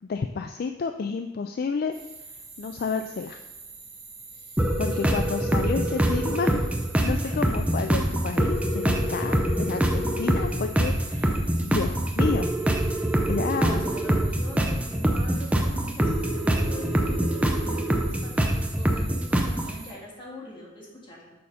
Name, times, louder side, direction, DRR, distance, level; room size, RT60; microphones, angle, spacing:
voice 1, 0.0-1.9 2.6-3.4 4.8-6.7 7.0-12.5 12.8-13.8, left 5 dB, 50° left, 6 dB, 0.3 m, -30 dB
sound 1, 1.9-19.9, right 4 dB, 30° right, 2.7 m, -45 dB
sound 2, 4.6-19.7, right 1 dB, 5° right, 0.7 m, -24 dB
voice 2, 4.9-5.5 7.0-7.5 9.2-9.3 13.5-21.3, left 1 dB, 25° left, -5 dB, 2.4 m, -43 dB
6.9 x 5.5 x 5.0 m, 1.1 s
head